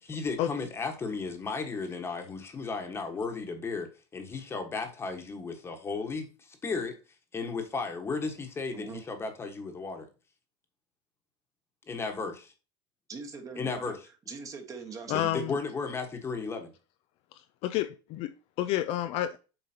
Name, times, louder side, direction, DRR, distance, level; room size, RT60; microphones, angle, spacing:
voice 1, 0.0-6.9 7.3-10.1 11.9-12.5 13.6-14.0 15.1-16.7, left 4 dB, 15° left, 1.4 m, -35 dB
voice 2, 13.1-14.0 14.3-15.5, right 5 dB, 20° right, 1.4 m, -42 dB
voice 3, 15.1-15.6 17.3-19.4, left 13 dB, 45° left, 0.5 m, -30 dB
7.8 x 5.0 x 2.8 m
supercardioid pair, 150°, 15 cm